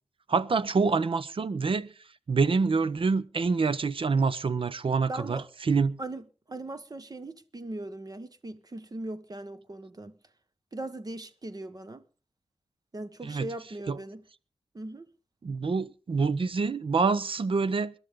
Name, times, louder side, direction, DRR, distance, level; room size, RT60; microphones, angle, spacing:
voice 1, 0.3-1.9 2.3-6.0 13.2-13.5 13.9-14.0 15.4-17.9, right 4 dB, 60° right, 0.9 m, -26 dB
voice 2, 5.1-5.5 6.0-10.1 10.7-12.0 12.9-14.2 14.7-15.1, right 2 dB, 40° right, 1.4 m, -39 dB
21.5 x 12.5 x 3.8 m
cardioid pair, 70°, 10 cm